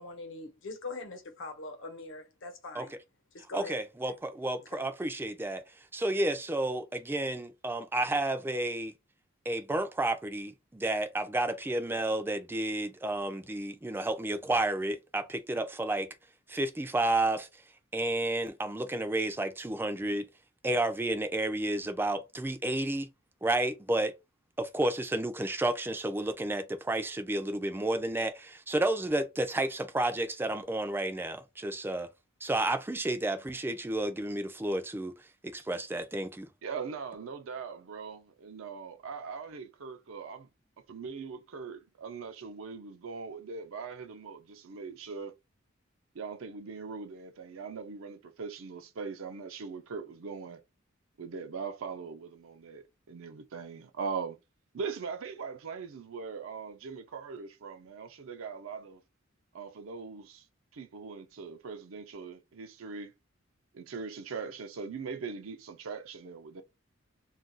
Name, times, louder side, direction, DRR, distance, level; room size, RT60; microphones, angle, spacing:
voice 1, 0.0-2.9 3.3-3.8 4.7-4.9, left 2 dB, 65° left, 0.9 m, -42 dB
voice 2, 3.5-5.6 5.9-8.9 9.5-16.1 16.5-17.5 17.9-20.3 20.6-23.1 23.4-24.1 24.6-32.1 32.4-35.1 35.4-36.5, right 1 dB, 10° right, 0.4 m, -31 dB
voice 3, 36.6-40.5 40.9-45.3 46.1-50.6 51.2-54.4 54.7-59.0 59.5-60.5 60.7-63.1 63.7-66.6, right 5 dB, 80° right, 0.5 m, -41 dB
2.4 x 2.2 x 3.8 m
head